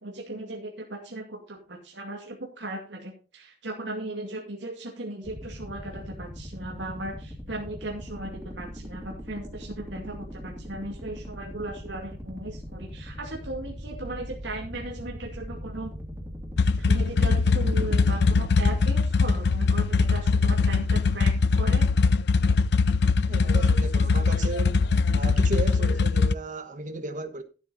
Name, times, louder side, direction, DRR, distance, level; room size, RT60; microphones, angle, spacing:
voice 1, 0.0-15.9 16.9-21.9, right 2 dB, 80° right, 2.3 m, -37 dB
sound 1, 5.2-21.0, equal, 10° right, 3.2 m, -40 dB
sound 2, 16.6-26.3, left 4 dB, 65° left, 0.5 m, -22 dB
voice 2, 23.3-24.8 25.1-27.4, right 3 dB, 45° right, 1.3 m, -34 dB
13.0 x 8.3 x 4.1 m
head